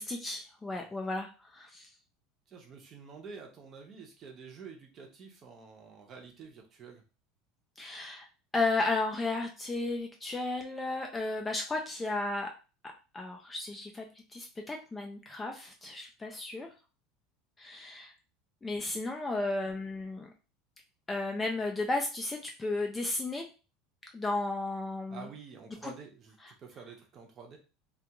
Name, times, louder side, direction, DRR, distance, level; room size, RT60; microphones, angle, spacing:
voice 1, 0.0-1.9 7.8-8.3 8.5-12.5 13.1-14.1 14.3-16.7 17.6-18.1 18.6-20.3 21.1-23.4 24.1-25.3 25.8-25.9, left 2 dB, 10° left, 2 dB, 0.3 m, -34 dB
voice 2, 2.5-7.0 25.1-27.6, right 5 dB, 30° right, 2 dB, 0.6 m, -49 dB
2.3 x 2.3 x 2.8 m, 0.32 s
cardioid pair, 160°, 0 cm